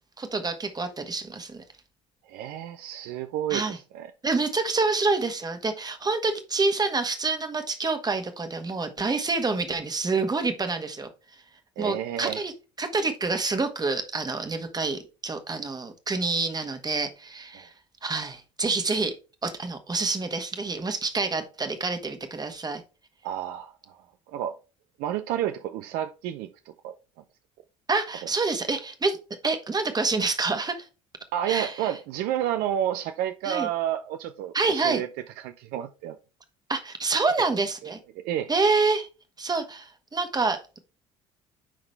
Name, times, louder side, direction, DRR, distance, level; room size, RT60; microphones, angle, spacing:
voice 1, 0.2-1.6 3.5-3.8 4.2-11.1 11.8-12.5 12.8-17.7 18.0-19.1 19.4-22.8 27.9-29.2 29.4-30.9 31.5-31.7 33.4-33.7 34.5-35.0 36.7-38.0 38.5-39.1 39.4-40.8, right 3 dB, 25° right, 1.6 m, -27 dB
voice 2, 2.2-4.1 11.8-12.4 17.5-17.7 23.2-24.6 25.0-26.5 26.8-26.9 31.3-35.1 35.4-36.2 37.8-38.5, right 11 dB, 65° right, 0.6 m, -30 dB
10.0 x 3.8 x 3.3 m
hypercardioid pair, 60°, 17 cm